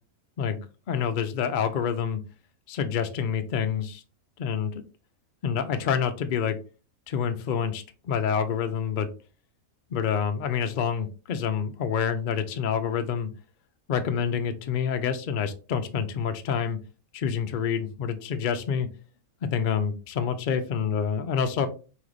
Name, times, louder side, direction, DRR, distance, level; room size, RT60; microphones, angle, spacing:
voice 1, 0.4-2.2 2.7-4.0 4.4-4.8 5.4-6.6 7.1-9.1 9.9-13.3 13.9-16.8 17.1-18.9 19.4-21.7, left 7 dB, 85° left, 8 dB, 0.4 m, -27 dB
3.8 x 3.2 x 3.2 m, 0.34 s
omnidirectional pair, 1.5 m